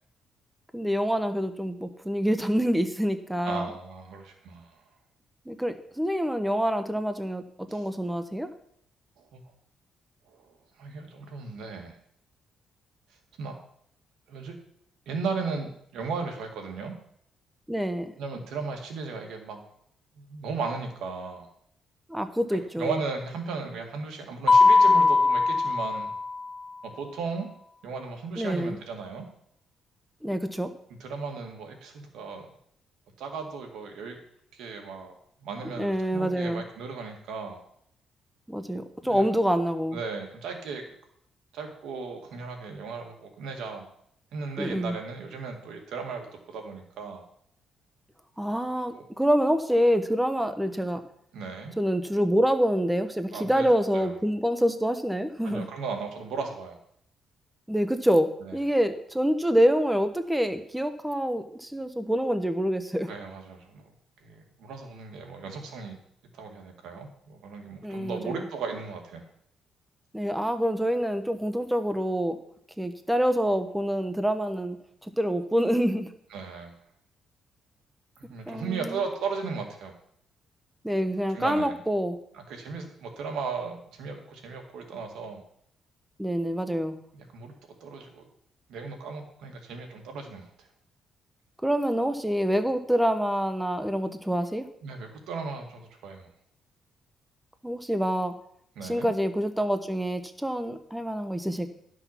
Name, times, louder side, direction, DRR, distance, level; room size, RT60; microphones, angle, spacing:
voice 1, 0.7-3.7 5.5-7.4 7.7-8.5 17.7-18.1 22.1-22.9 28.4-28.8 30.2-30.7 35.8-36.6 38.5-40.0 44.6-45.0 48.4-51.0 51.8-55.7 57.7-63.1 67.8-68.4 70.1-72.4 72.8-74.8 75.2-76.1 78.5-79.0 80.8-82.2 86.2-86.9 91.6-94.6 97.6-98.3 98.8-101.7, equal, 5° right, 9 dB, 0.9 m, -26 dB
voice 2, 3.4-4.8 7.7-7.9 9.2-9.4 10.3-11.9 13.4-13.6 14.3-14.5 15.1-16.9 18.2-19.6 20.2-21.5 22.8-26.1 26.8-27.5 27.8-29.3 31.0-32.5 33.2-34.2 34.5-35.1 35.4-37.6 39.0-39.2 39.9-40.9 41.5-43.9 44.3-47.2 48.9-49.0 51.3-51.7 53.3-54.2 55.4-56.8 58.4-58.6 63.1-63.9 64.2-66.0 66.3-69.2 76.3-76.8 78.2-79.9 81.3-81.8 82.3-85.4 87.1-87.5 87.8-88.3 88.7-90.7 94.8-96.3 98.8-99.1, right 4 dB, 85° right, 3 dB, 2.1 m, -36 dB
Mallet percussion, 24.5-26.5, left 3 dB, 25° left, 0.8 m, -20 dB
12.0 x 6.1 x 5.9 m, 0.68 s
cardioid pair, 90°, 0 cm